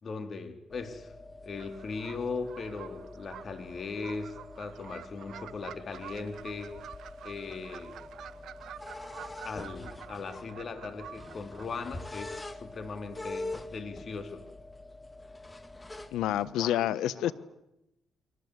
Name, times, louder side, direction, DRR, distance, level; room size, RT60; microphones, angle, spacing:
voice 1, 0.0-1.1 1.4-6.7 7.2-8.0 9.4-14.4 16.5-16.8 17.2-17.3, left 4 dB, 45° left, 8 dB, 3.9 m, -39 dB
sound 1, 0.7-16.5, left 2 dB, 15° left, 2.0 m, -45 dB
sound 2, 1.6-11.7, right 10 dB, 70° right, 1.4 m, -48 dB
voice 2, 16.1-17.3, left 12 dB, 90° left, 17 dB, 1.2 m, -28 dB
29.5 x 24.0 x 8.2 m, 0.87 s
cardioid pair, 90°, 0 cm